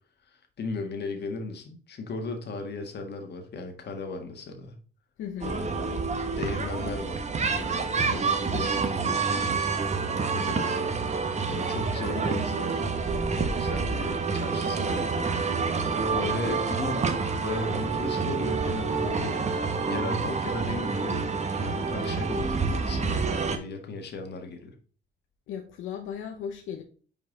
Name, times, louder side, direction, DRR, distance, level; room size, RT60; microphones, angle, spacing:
voice 1, 0.3-4.7 5.4-6.0 6.4-9.2 10.3-11.0 11.5-12.9 13.3-19.4 19.9-21.3 21.5-24.7, left 3 dB, 55° left, 1.6 m, -36 dB
voice 2, 5.2-5.5 25.5-26.8, left 8 dB, 85° left, 0.8 m, -36 dB
sound 1, 5.4-23.6, right 4 dB, 35° right, 1.0 m, -28 dB
5.6 x 4.8 x 3.9 m
cardioid pair, 90°, 20 cm